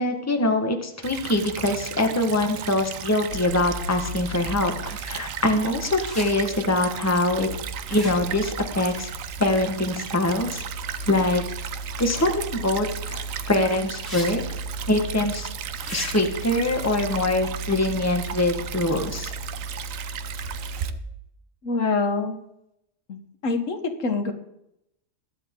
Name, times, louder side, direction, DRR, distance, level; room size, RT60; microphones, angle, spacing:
voice 1, 0.0-7.5 7.9-9.1 9.4-10.6 11.1-11.4 12.0-14.4 14.9-15.5 15.9-19.3, left 2 dB, 10° left, 5 dB, 1.3 m, -24 dB
Stream / Trickle dribble, 1.0-20.9, right 9 dB, 80° right, 1.2 m, -36 dB
sound 1, 3.3-21.0, right 2 dB, 60° left, 1.4 m, -37 dB
sound 2, 6.0-6.3 7.8-8.4 12.0-12.1 14.0-14.3 14.6-14.7 15.8-16.1, equal, 15° right, 3.1 m, -35 dB
voice 2, 21.6-22.4 23.1-24.3, left 3 dB, 75° left, 6 dB, 1.7 m, -25 dB
21.5 x 7.9 x 3.7 m, 0.82 s
omnidirectional pair, 1.4 m